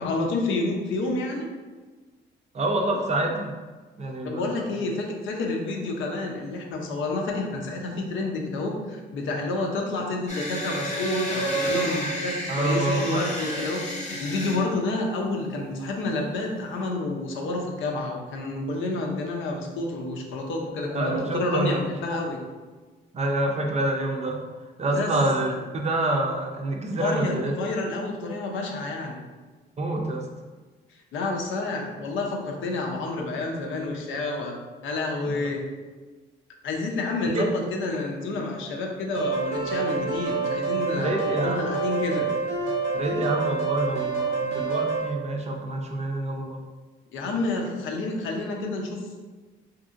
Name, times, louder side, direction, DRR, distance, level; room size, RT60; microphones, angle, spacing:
voice 1, 0.0-1.5 4.2-22.4 24.9-25.2 26.9-29.2 31.1-34.6 34.8-35.6 36.6-41.1 41.4-42.3 47.1-49.2, left 2 dB, 75° left, 1 dB, 0.6 m, -29 dB
voice 2, 2.5-3.5 4.0-4.6 12.5-13.2 13.6-13.7 20.9-21.8 23.1-24.4 24.8-27.5 29.8-30.2 35.3-35.4 37.3-37.4 40.9-41.6 42.9-46.6, right 2 dB, 35° right, 2 dB, 0.5 m, -27 dB
sound 1, 10.3-14.6, right 1 dB, 35° left, 0.7 m, -30 dB
sound 2, 39.1-45.1, right 4 dB, 90° right, 0.8 m, -27 dB
2.8 x 2.6 x 2.5 m, 1.3 s
cardioid pair, 90°, 20 cm